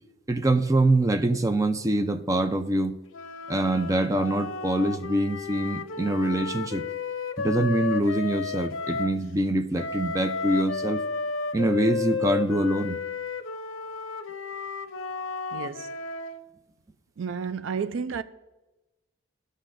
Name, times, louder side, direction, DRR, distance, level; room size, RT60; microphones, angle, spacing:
voice 1, 0.3-2.9 3.5-6.8 7.4-11.0 11.5-13.0, right 1 dB, 15° right, 0.5 m, -24 dB
sound 1, 3.1-9.2 9.7-16.4, left 4 dB, 80° left, 0.6 m, -33 dB
voice 2, 15.5-15.9 17.2-18.2, right 6 dB, 70° right, 0.4 m, -31 dB
16.0 x 6.5 x 2.6 m
head